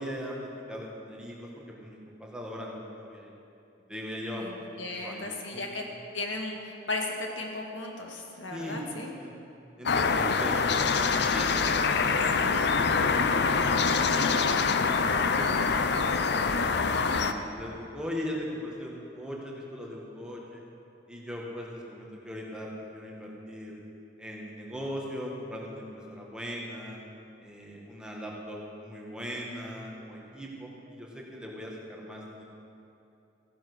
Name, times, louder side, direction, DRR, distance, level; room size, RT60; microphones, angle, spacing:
voice 1, 0.0-3.3 3.9-4.6 5.0-5.7 8.5-8.8 9.1-9.3 9.8-10.6 11.1-14.6 15.2-16.5 17.0-20.6 21.1-23.8 24.2-27.0 27.4-32.4, equal, 5° right, -3 dB, 1.9 m, -39 dB
voice 2, 4.8-5.8 6.1-9.1, left 2 dB, 80° left, 1 dB, 1.9 m, -35 dB
sound 1, 9.9-17.3, left 4 dB, 60° left, 0.6 m, -25 dB
15.0 x 10.5 x 6.4 m, 2.8 s
head